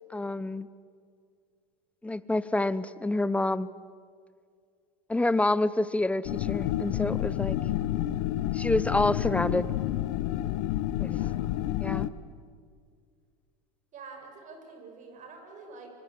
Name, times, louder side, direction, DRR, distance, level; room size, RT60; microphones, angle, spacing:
voice 1, 0.1-0.7 2.0-3.7 5.1-7.6 8.5-9.7 11.0-11.1 11.8-12.1, left 2 dB, 5° left, 17 dB, 0.9 m, -27 dB
sound 1, 6.3-12.1, left 13 dB, 60° left, 1.2 m, -29 dB
voice 2, 11.0-11.4 13.9-15.9, right 4 dB, 40° right, 4 dB, 7.6 m, -47 dB
25.5 x 24.5 x 8.6 m, 2.2 s
hypercardioid pair, 90°, 20 cm